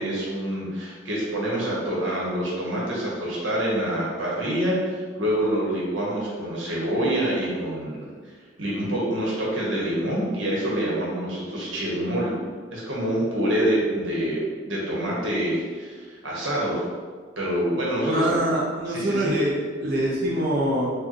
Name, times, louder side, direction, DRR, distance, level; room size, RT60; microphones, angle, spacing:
voice 1, 0.0-8.1 8.6-12.3 12.7-14.4 14.7-16.8 17.4-18.4 18.9-19.3, right 1 dB, 80° right, -5 dB, 1.3 m, -26 dB
voice 2, 18.1-20.9, right 1 dB, 50° right, -4 dB, 0.7 m, -24 dB
4.7 x 2.5 x 3.1 m, 1.5 s
head